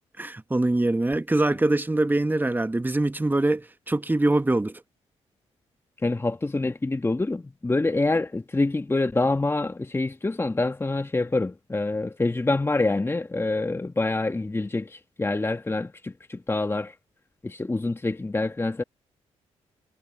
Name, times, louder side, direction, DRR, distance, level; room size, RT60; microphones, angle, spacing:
voice 1, 0.2-4.8, right 2 dB, 15° right, 1.1 m, -23 dB
voice 2, 6.0-16.9 17.4-18.8, left 2 dB, 20° left, 1.3 m, -26 dB
supercardioid pair, 55°, 13 cm